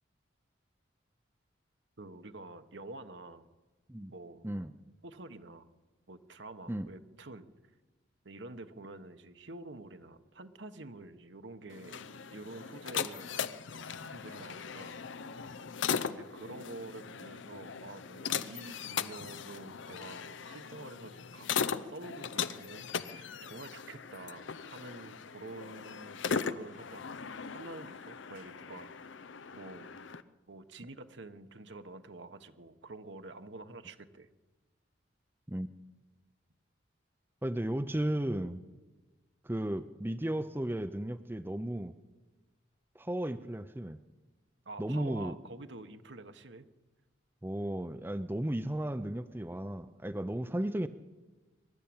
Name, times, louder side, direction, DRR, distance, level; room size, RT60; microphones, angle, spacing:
voice 1, 2.0-3.5 4.1-4.5 5.0-5.7 6.1-7.5 8.2-12.0 12.3-13.3 13.9-15.0 16.1-27.0 27.5-29.1 29.5-29.9 30.5-34.3 44.6-46.7, right 2 dB, 70° right, 8 dB, 1.2 m, -48 dB
sound 1, 11.7-30.2, left 6 dB, 80° left, 0.7 m, -39 dB
voice 2, 37.4-38.6 39.4-41.9 43.0-44.0 44.8-45.4 47.4-50.9, right 1 dB, 10° right, 10 dB, 0.5 m, -34 dB
23.5 x 12.5 x 8.8 m, 1.2 s
head